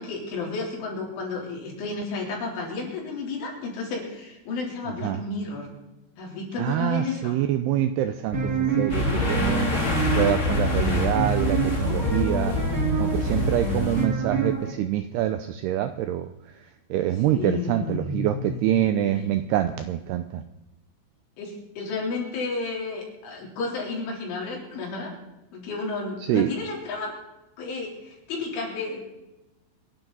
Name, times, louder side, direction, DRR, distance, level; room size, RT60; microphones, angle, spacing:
voice 1, 0.0-5.7 6.2-7.3 17.3-18.6 19.1-19.3 21.4-25.1 25.5-27.1 27.6-29.0, left 3 dB, 85° left, -2 dB, 6.1 m, -32 dB
voice 2, 6.6-8.5 8.8-9.7 10.1-12.5 13.0-16.3 16.9-20.4 26.3-26.5, right 12 dB, 90° right, 9 dB, 2.3 m, -25 dB
sound 1, 8.3-14.7, right 4 dB, 50° right, 1.0 m, -27 dB
sound 2, 8.9-14.0, left 2 dB, 35° left, 1.2 m, -26 dB
26.5 x 11.0 x 4.0 m, 0.97 s
omnidirectional pair, 5.4 m